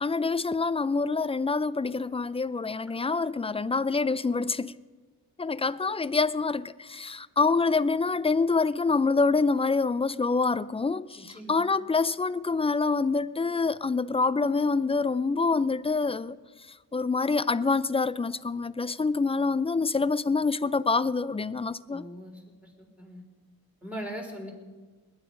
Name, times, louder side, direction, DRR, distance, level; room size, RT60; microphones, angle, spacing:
voice 1, 0.0-4.7 5.4-16.4 16.9-22.1, left 4 dB, 15° left, 0.4 m, -26 dB
voice 2, 21.9-23.2 23.8-24.5, equal, 5° right, 3.9 m, -40 dB
20.5 x 10.5 x 5.2 m
cardioid pair, 85°, 36 cm